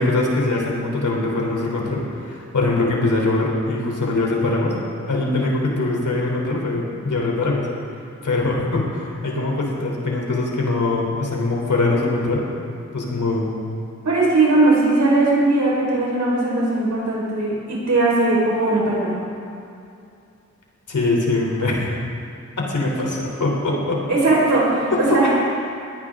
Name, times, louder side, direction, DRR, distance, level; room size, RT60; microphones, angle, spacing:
voice 1, 0.0-4.8 5.0-7.7 8.2-12.4 12.9-13.5 20.9-21.9 22.6-24.0 25.1-25.2, left 2 dB, 90° left, -2 dB, 3.7 m, -22 dB
voice 2, 14.0-19.2 24.1-25.3, right 2 dB, 75° right, -5 dB, 4.8 m, -19 dB
21.0 x 17.5 x 3.8 m, 2.5 s
wide cardioid pair, 110°, 29 cm